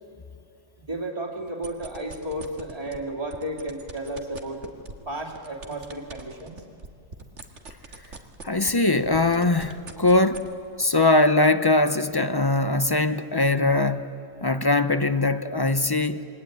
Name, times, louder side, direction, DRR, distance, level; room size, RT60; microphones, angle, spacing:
voice 1, 0.8-4.7 5.0-6.6, right 1 dB, 30° right, 0 dB, 2.8 m, -33 dB
sound 1, 1.5-3.0 3.3-8.8 9.1-10.5, right 4 dB, 75° right, 2.1 m, -41 dB
voice 2, 8.4-10.5 10.8-14.0 14.4-16.2, left 2 dB, 25° left, 11 dB, 0.6 m, -21 dB
27.5 x 23.0 x 9.3 m, 2.6 s
omnidirectional pair, 1.2 m